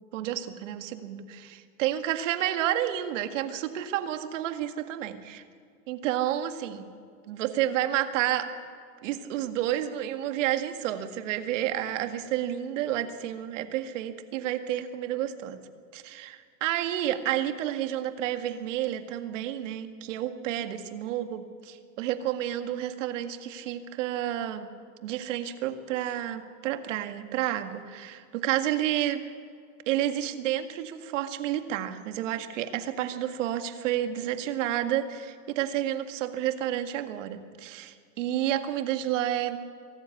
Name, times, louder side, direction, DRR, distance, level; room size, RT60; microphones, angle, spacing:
voice 1, 0.1-5.4 5.9-6.9 7.3-8.5 9.0-15.6 15.9-24.7 25.0-29.2 29.9-39.6, right 12 dB, 70° right, 8 dB, 2.0 m, -30 dB
23.5 x 14.0 x 9.8 m, 2.2 s
supercardioid pair, 130°, 39 cm